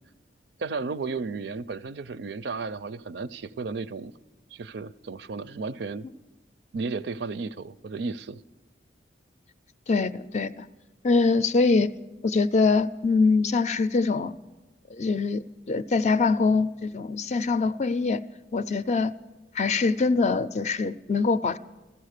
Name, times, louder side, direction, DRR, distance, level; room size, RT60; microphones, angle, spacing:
voice 1, 0.6-4.1 4.5-6.1 6.7-8.4, right 4 dB, 70° right, 0.4 m, -33 dB
voice 2, 9.9-10.7 11.0-11.9 12.2-14.3 14.9-18.2 18.5-19.1 19.6-21.6, left 4 dB, 40° left, 0.4 m, -23 dB
15.0 x 14.5 x 6.6 m
head